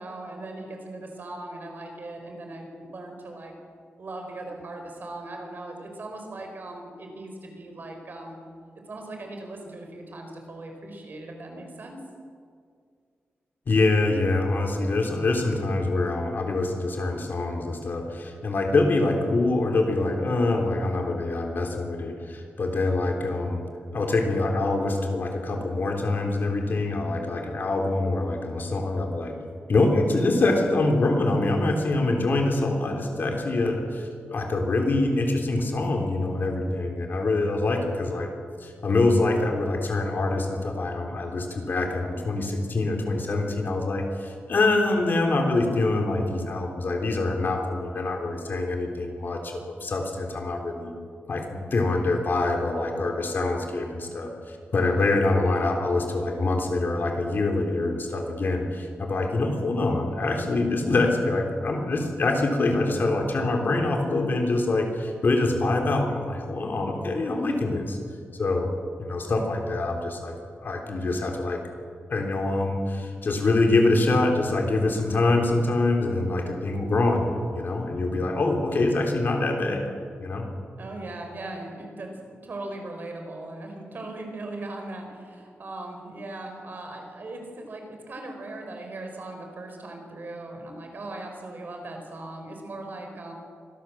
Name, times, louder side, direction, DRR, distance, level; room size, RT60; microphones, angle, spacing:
voice 1, 0.0-3.5 4.0-8.4 8.9-12.0 69.4-69.5 80.8-93.3, right 2 dB, 50° right, 3 dB, 4.9 m, -39 dB
voice 2, 13.7-23.7 23.9-29.4 29.7-38.3 38.6-50.9 51.3-68.0 68.3-68.7 69.0-70.3 70.6-71.6 72.1-79.9 80.2-80.5, left 2 dB, 50° left, 2 dB, 3.5 m, -25 dB
25.0 x 18.0 x 7.6 m, 2.1 s
wide cardioid pair, 155°, 4 cm